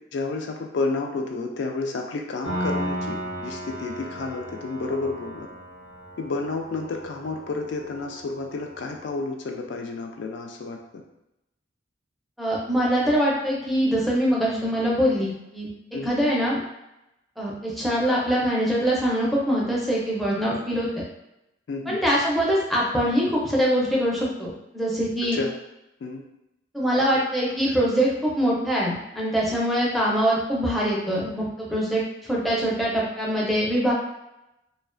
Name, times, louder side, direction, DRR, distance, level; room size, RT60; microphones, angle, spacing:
voice 1, 0.1-5.5 6.2-11.0 15.9-16.1 21.7-22.0 25.3-25.5 26.0-26.2 27.7-27.8 29.5-29.6, left 3 dB, 70° left, 3 dB, 0.3 m, -31 dB
Piano, 2.4-9.2, equal, 85° left, 0.8 m, -35 dB
voice 2, 12.4-15.7 16.0-16.6 17.4-21.0 21.9-25.4 26.7-33.9, equal, ahead, -6 dB, 0.4 m, -23 dB
2.3 x 2.1 x 2.4 m, 0.89 s
head